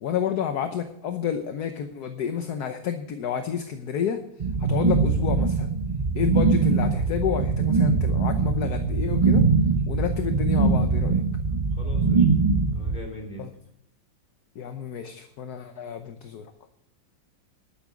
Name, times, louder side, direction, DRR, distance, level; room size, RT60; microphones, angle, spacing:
voice 1, 0.0-4.2 4.6-5.7 6.1-9.4 9.9-11.2 13.4-13.5 14.5-16.5, left 8 dB, 60° left, 7 dB, 1.3 m, -30 dB
sound 1, 4.4-13.0, right 4 dB, 60° right, 0.3 m, -22 dB
voice 2, 11.8-12.3 12.7-13.5, left 1 dB, 25° left, -1 dB, 3.5 m, -41 dB
12.0 x 9.4 x 5.0 m, 0.80 s
omnidirectional pair, 2.0 m